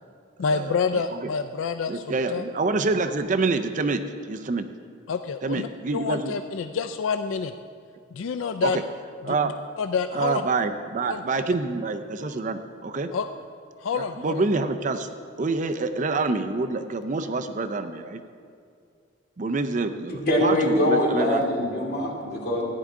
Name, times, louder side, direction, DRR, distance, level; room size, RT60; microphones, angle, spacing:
voice 1, 0.4-2.4 5.1-5.7 5.9-7.5 8.1-8.8 9.2-9.4 9.8-10.4 11.1-11.2 13.1-13.3 13.8-14.4, left 5 dB, 80° left, 9 dB, 0.4 m, -27 dB
voice 2, 1.9-4.0 4.3-4.7 5.4-6.3 8.6-8.8 9.3-9.5 10.1-13.1 13.9-15.1 15.4-18.2 19.4-21.4, right 3 dB, 40° right, 8 dB, 0.5 m, -27 dB
voice 3, 20.1-22.6, left 1 dB, 50° left, -3 dB, 2.6 m, -23 dB
14.5 x 10.0 x 3.7 m, 2.3 s
head